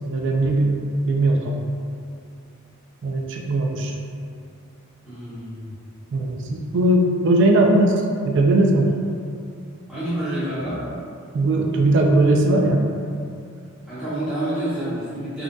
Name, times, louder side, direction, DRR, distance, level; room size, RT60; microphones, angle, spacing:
voice 1, 0.1-0.8 1.0-1.6 3.0-3.9 6.1-8.9 11.3-12.8, right 2 dB, 55° right, 1 dB, 0.3 m, -19 dB
voice 2, 5.0-5.8 9.9-10.9 13.9-15.4, right 1 dB, 5° right, -15 dB, 0.9 m, -28 dB
3.6 x 2.5 x 2.2 m, 2.4 s
head